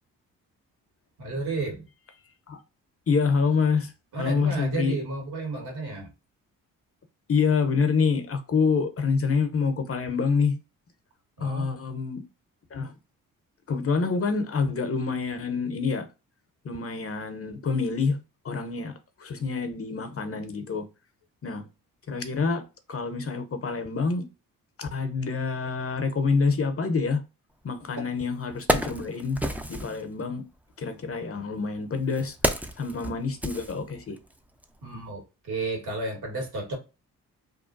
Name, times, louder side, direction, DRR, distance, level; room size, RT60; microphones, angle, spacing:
voice 1, 1.2-1.9 4.1-6.1 11.4-11.7 34.8-36.8, right 3 dB, 70° right, 1.6 m, -32 dB
voice 2, 3.1-3.9 4.2-5.0 7.3-10.6 11.4-12.2 12.7-12.9 13.7-16.1 16.6-20.9 21.4-21.7 22.1-24.3 24.8-27.2 27.6-29.4 29.7-30.5 30.8-32.4 32.8-34.2, left 5 dB, 35° left, 0.7 m, -27 dB
Wood, 27.8-27.9 28.4-30.0 31.0-34.3 34.6-34.8, right 1 dB, 5° right, 0.4 m, -30 dB
2.9 x 2.2 x 2.5 m
hypercardioid pair, 45°, 40 cm